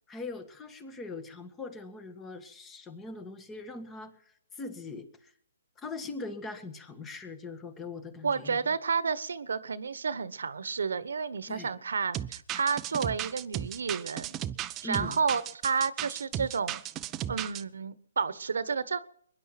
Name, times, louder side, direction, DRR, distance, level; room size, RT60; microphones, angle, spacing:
voice 1, 0.1-4.2 4.5-5.3 5.8-8.6 11.5-11.7 14.8-15.2, left 3 dB, 15° left, 11 dB, 1.8 m, -41 dB
voice 2, 8.2-14.3 14.8-16.8 17.3-19.0, right 5 dB, 75° right, 16 dB, 1.2 m, -31 dB
sound 1, 12.1-17.6, right 11 dB, 20° right, 0.7 m, -35 dB
22.5 x 11.0 x 5.9 m, 0.65 s
hypercardioid pair, 145°, 0 cm